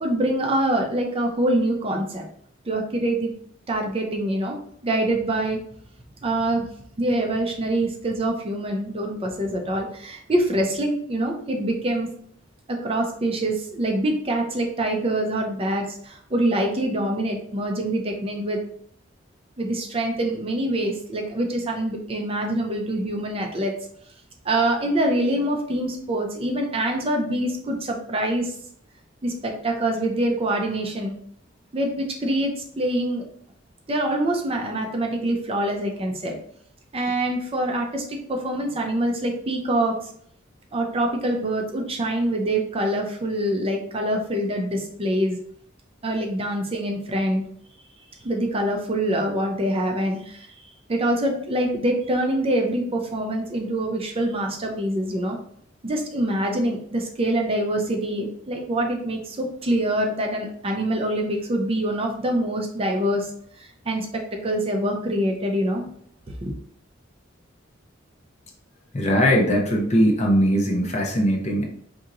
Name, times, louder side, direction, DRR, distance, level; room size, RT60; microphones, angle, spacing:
voice 1, 0.0-2.2 2.7-3.3 3.7-4.6 4.8-5.6 6.2-6.6 7.0-12.1 12.7-18.6 19.6-23.7 24.4-28.5 29.2-31.1 31.7-33.2 33.9-36.4 36.9-40.0 40.7-45.4 46.0-47.4 48.2-50.5 50.9-55.4 55.8-63.3 63.6-65.8 66.4-66.5, right 1 dB, 30° right, 2 dB, 0.5 m, -25 dB
voice 2, 68.9-71.6, equal, 35° left, 0 dB, 0.7 m, -20 dB
4.2 x 2.7 x 2.5 m, 0.64 s
head